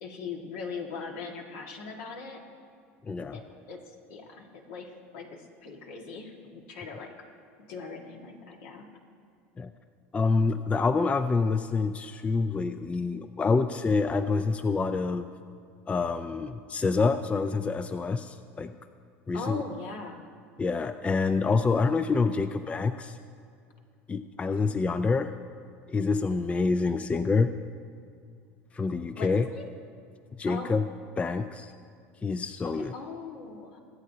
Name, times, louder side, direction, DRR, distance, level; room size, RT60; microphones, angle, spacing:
voice 1, 0.0-2.4 3.3-7.1 7.7-8.9 19.3-20.2 24.4-25.1 29.1-29.7 30.5-30.8 32.6-33.8, left 4 dB, 75° left, 2 dB, 1.6 m, -40 dB
voice 2, 3.1-3.4 9.6-9.7 10.1-15.2 15.9-18.7 19.3-19.6 20.6-23.2 24.1-25.3 25.9-27.5 28.7-29.4 30.4-30.8 31.2-31.7 32.2-32.9, left 4 dB, 20° left, 10 dB, 0.4 m, -27 dB
23.5 x 8.3 x 2.8 m, 2.3 s
supercardioid pair, 95°, 6 cm